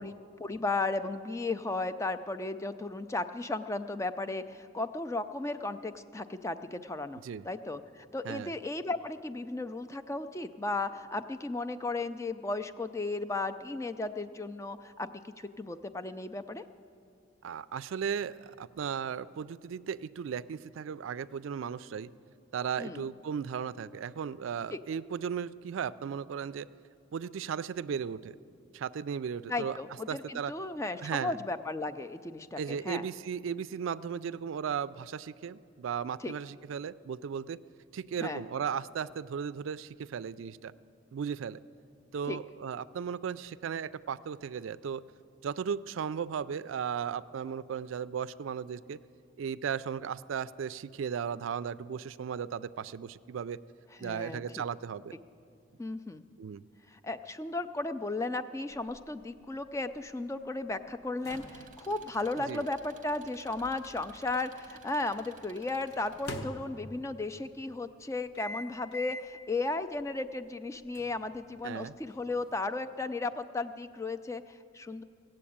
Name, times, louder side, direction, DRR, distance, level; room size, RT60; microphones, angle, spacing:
voice 1, 0.0-16.6 22.8-23.0 24.7-24.8 29.5-33.1 36.2-36.3 38.2-38.4 42.3-42.4 54.0-54.4 55.8-56.2 56.9-75.0, left 2 dB, 15° left, 10 dB, 0.3 m, -35 dB
voice 2, 17.4-22.1 22.5-26.7 27.1-28.4 28.7-29.8 30.1-30.5 31.0-31.4 32.6-37.6 37.9-40.7 41.1-41.6 42.1-45.0 45.4-49.0 49.4-53.6 54.0-55.2 56.4-56.6 62.4-62.7 71.6-71.9, right 7 dB, 75° right, 16 dB, 0.3 m, -36 dB
sound 1, 58.7-64.8 65.9-67.2 68.3-69.4 69.9-70.0 70.9-72.6, left 1 dB, 55° left, 1.0 m, -46 dB
Engine, 61.3-66.3, right 5 dB, 40° right, 0.8 m, -56 dB
16.5 x 7.7 x 8.6 m, 2.4 s
head